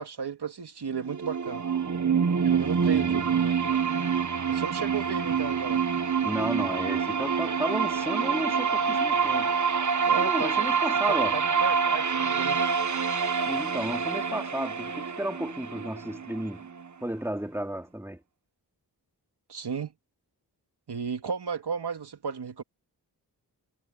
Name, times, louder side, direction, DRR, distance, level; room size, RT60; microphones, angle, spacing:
voice 1, 0.0-1.6 2.4-3.6 4.5-5.8 10.0-10.8 11.1-12.6 19.5-19.9 20.9-22.6, right 6 dB, 80° right, 2.4 m, -34 dB
sound 1, 0.9-16.9, right 6 dB, 45° right, 1.1 m, -26 dB
voice 2, 2.8-3.2 6.2-9.5 10.2-11.4 13.5-16.7 17.0-18.2, right 1 dB, 5° right, 3.7 m, -33 dB
wide cardioid pair, 70°, 39 cm